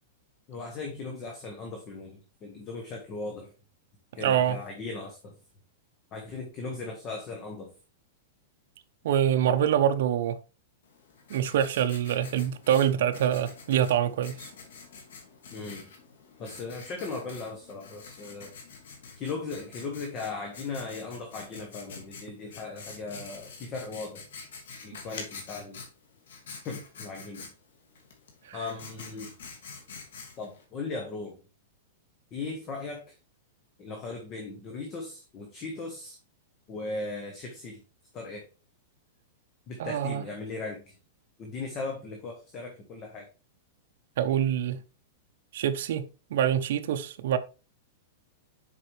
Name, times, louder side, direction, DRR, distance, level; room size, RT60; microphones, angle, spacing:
voice 1, 0.5-3.5 4.1-5.4 6.1-7.8 15.5-15.9 16.4-18.5 19.2-24.3 24.8-25.8 26.6-27.5 28.5-29.3 30.4-31.4 32.3-33.2 33.8-36.2 36.7-37.8 38.1-38.5 39.7-41.0 41.4-43.3, left 3 dB, 20° left, 1.2 m, -38 dB
voice 2, 4.2-4.6 9.0-10.4 11.3-14.5 28.5-28.6 39.8-40.2 44.2-44.8 45.5-47.4, right 10 dB, 60° right, 0.8 m, -25 dB
Writing, 10.8-30.6, left 5 dB, 80° left, 2.3 m, -47 dB
7.3 x 5.1 x 3.3 m
supercardioid pair, 170°, 0 cm